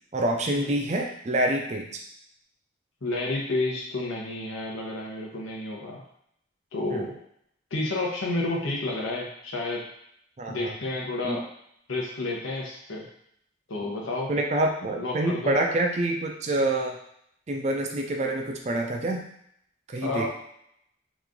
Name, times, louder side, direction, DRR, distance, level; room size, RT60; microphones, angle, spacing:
voice 1, 0.1-1.9 6.9-7.1 10.4-10.7 11.2-11.4 14.3-17.0 17.5-19.2 19.9-20.3, right 1 dB, 35° right, 2 dB, 0.4 m, -26 dB
voice 2, 3.0-6.0 6.7-7.2 7.7-9.8 10.5-11.4 11.9-13.1 13.7-14.3 14.9-15.6 20.0-20.3, left 2 dB, 85° left, -2 dB, 0.9 m, -30 dB
3.0 x 2.5 x 3.7 m, 0.73 s
head